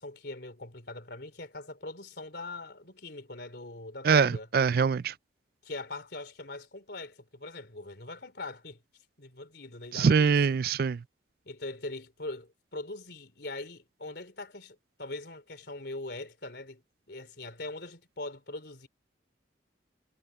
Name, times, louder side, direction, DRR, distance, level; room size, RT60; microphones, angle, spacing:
voice 1, 0.0-4.5 5.6-8.8 9.2-10.4 11.5-16.8 17.1-18.9, left 2 dB, 60° left, 3.5 m, -41 dB
voice 2, 4.0-5.1 9.9-11.0, right 6 dB, 50° right, 0.3 m, -23 dB
head